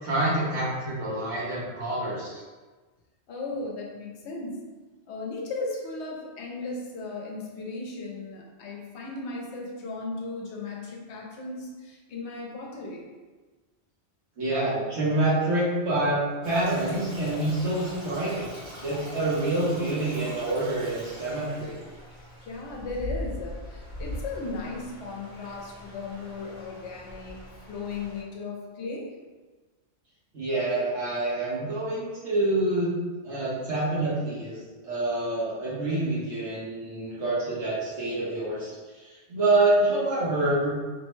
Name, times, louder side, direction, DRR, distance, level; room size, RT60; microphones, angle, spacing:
voice 1, 0.0-2.4 14.4-18.5 18.8-21.7 30.3-32.9 33.2-40.9, right 2 dB, 75° right, -8 dB, 1.3 m, -27 dB
voice 2, 3.3-4.6 5.1-13.1 22.5-29.1, left 3 dB, 75° left, 0 dB, 0.9 m, -36 dB
Stream, 16.4-28.2, left 1 dB, 60° right, 1.8 m, -41 dB
3.3 x 2.1 x 3.1 m, 1.3 s
omnidirectional pair, 1.2 m